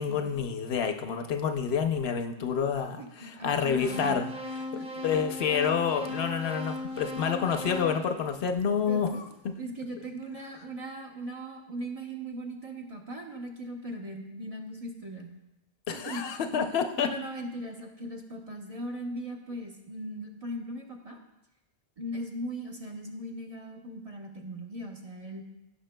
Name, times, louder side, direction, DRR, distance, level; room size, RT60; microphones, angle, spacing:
voice 1, 0.0-4.3 4.6-4.7 5.0-9.3 15.9-17.1, left 7 dB, 80° left, 7 dB, 0.9 m, -28 dB
voice 2, 3.0-4.2 4.8-5.4 8.9-9.2 9.6-15.3 15.9-16.2 17.0-21.2 22.0-25.4, right 1 dB, 35° right, 1 dB, 1.0 m, -39 dB
sound 1, 3.9-9.0, left 2 dB, 5° right, 0.9 m, -37 dB
16.5 x 5.8 x 2.2 m, 0.92 s
omnidirectional pair, 1.0 m